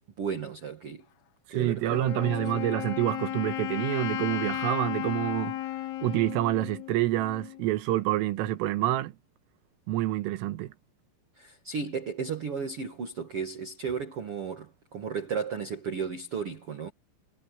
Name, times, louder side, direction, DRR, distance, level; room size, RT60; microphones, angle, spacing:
voice 1, 0.2-1.0 1.5-2.6 11.3-16.9, right 6 dB, 65° right, 1.4 m, -34 dB
voice 2, 1.5-5.6 6.0-9.1 9.9-10.7, right 15 dB, 90° right, 3.8 m, -27 dB
Wind instrument woodwind instrument, 1.9-7.6, left 14 dB, 85° left, 4.1 m, -34 dB
omnidirectional pair, 5.8 m